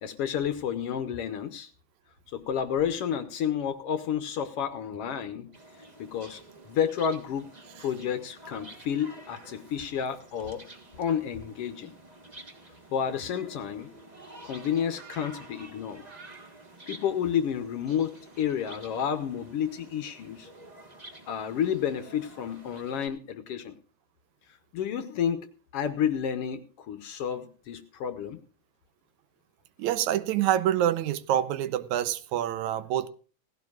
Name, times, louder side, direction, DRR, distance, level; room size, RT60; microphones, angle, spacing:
voice 1, 0.0-1.7 2.3-5.5 6.0-6.4 6.7-7.5 7.8-10.6 11.0-11.9 12.9-13.9 14.4-16.0 16.9-20.5 21.3-23.7 24.7-25.5 25.7-28.4, left 8 dB, 65° left, 1.6 m, -30 dB
sound 1, 5.5-23.1, right 2 dB, 25° right, 1.0 m, -50 dB
voice 2, 29.8-33.1, right 11 dB, 80° right, 2.1 m, -26 dB
17.5 x 16.0 x 2.4 m
omnidirectional pair, 3.4 m